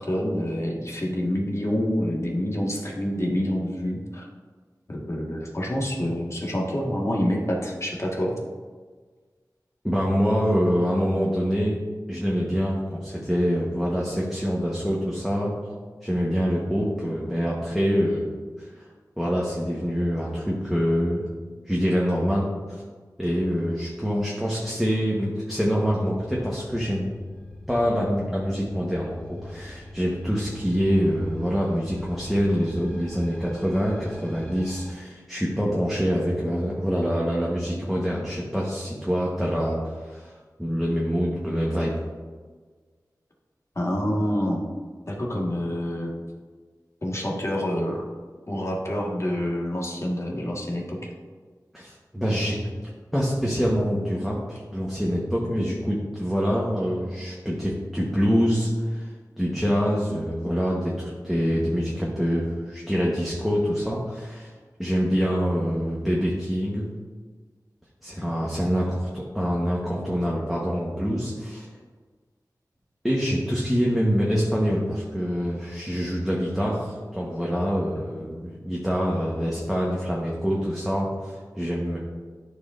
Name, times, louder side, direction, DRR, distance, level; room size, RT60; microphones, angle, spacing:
voice 1, 0.0-4.3 4.9-8.3 43.8-44.6 45.1-46.1 47.0-48.0 48.5-51.1, equal, 40° left, -2 dB, 1.7 m, -27 dB
voice 2, 9.8-11.8 12.1-15.5 16.0-18.3 18.6-18.8 19.2-21.2 21.7-22.8 23.2-27.1 27.7-40.3 40.6-42.0 51.7-52.6 53.1-59.1 59.4-64.5 64.8-66.9 68.0-71.7 73.0-82.0, equal, ahead, -4 dB, 1.3 m, -25 dB
sound 1, 25.8-34.9, left 1 dB, 15° left, 1.5 m, -44 dB
12.0 x 4.8 x 2.6 m, 1.5 s
wide cardioid pair, 50°, 7 cm